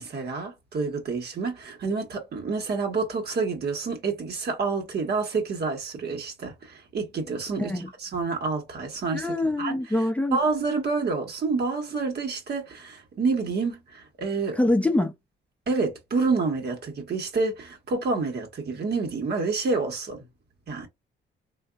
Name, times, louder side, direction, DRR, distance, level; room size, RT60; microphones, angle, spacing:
voice 1, 0.0-7.7 8.0-9.8 10.3-14.6 15.7-20.2 20.7-20.9, right 4 dB, 55° right, 1.4 m, -28 dB
voice 2, 7.6-7.9 9.1-10.4 14.5-15.1, left 1 dB, 5° left, 0.6 m, -24 dB
3.5 x 2.6 x 2.4 m
cardioid pair, 90°, 20 cm